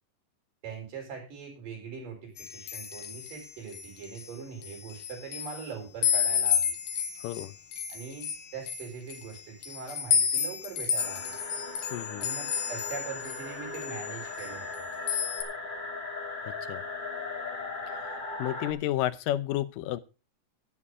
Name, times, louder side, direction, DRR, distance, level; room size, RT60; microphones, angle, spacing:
voice 1, 0.6-6.8 7.9-11.3 12.2-14.7, right 6 dB, 85° right, 1 dB, 6.0 m, -42 dB
sound 1, 2.4-4.3 4.6-5.7 6.0-13.5 13.7-14.8 15.1-15.4, left 8 dB, 70° left, 2.7 m, -31 dB
voice 2, 7.2-7.5 11.9-12.3 16.7-16.8 18.4-20.0, left 13 dB, 85° left, 15 dB, 2.4 m, -31 dB
sound 2, 11.0-18.7, left 3 dB, 35° left, 0.8 m, -38 dB
11.0 x 9.9 x 4.9 m, 0.32 s
omnidirectional pair, 3.8 m